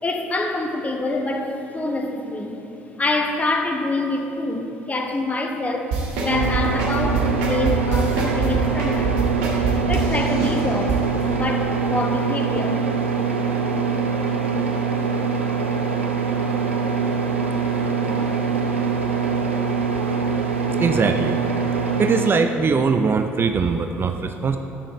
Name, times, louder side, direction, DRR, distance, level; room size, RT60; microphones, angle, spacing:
voice 1, 0.0-2.6 3.0-9.2 9.9-11.0 11.3-12.9, left 2 dB, 20° left, 3 dB, 1.0 m, -26 dB
sound 1, 5.9-11.0 11.3-11.4, right 5 dB, 70° right, 1.5 m, -24 dB
sound 2, 6.3-22.3, right 5 dB, 90° right, 0.5 m, -23 dB
voice 2, 20.8-21.4 22.0-24.6, right 5 dB, 35° right, 7 dB, 0.4 m, -21 dB
9.2 x 6.3 x 4.2 m, 2.9 s
hypercardioid pair, 55°, 6 cm